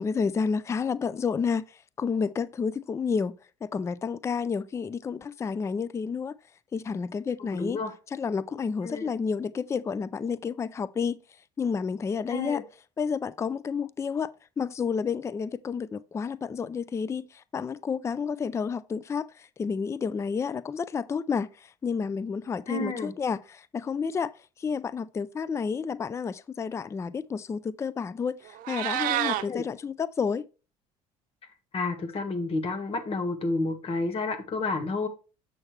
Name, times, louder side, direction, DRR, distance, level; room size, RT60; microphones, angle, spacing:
voice 1, 0.0-1.6 2.0-6.3 6.7-7.8 8.1-11.2 11.6-12.6 13.0-14.3 14.6-24.3 24.6-30.5, left 5 dB, 20° left, 0.3 m, -30 dB
voice 2, 7.4-7.9 8.8-9.1 12.3-12.6 22.7-23.1 29.5-29.6 31.7-35.1, left 3 dB, 40° left, 1.5 m, -30 dB
Meow, 28.5-29.4, right 13 dB, 65° right, 0.7 m, -28 dB
7.6 x 6.3 x 3.2 m
cardioid pair, 105°, 15 cm